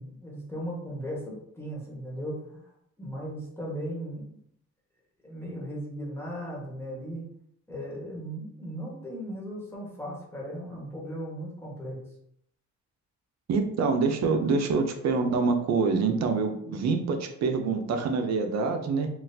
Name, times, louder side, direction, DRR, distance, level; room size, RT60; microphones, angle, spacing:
voice 1, 0.0-2.6 3.0-4.2 5.2-7.2 7.7-12.1, equal, 10° left, -5 dB, 1.4 m, -37 dB
voice 2, 13.5-19.1, right 4 dB, 60° right, 6 dB, 0.6 m, -26 dB
3.9 x 2.4 x 2.7 m, 0.71 s
cardioid pair, 90°, 30 cm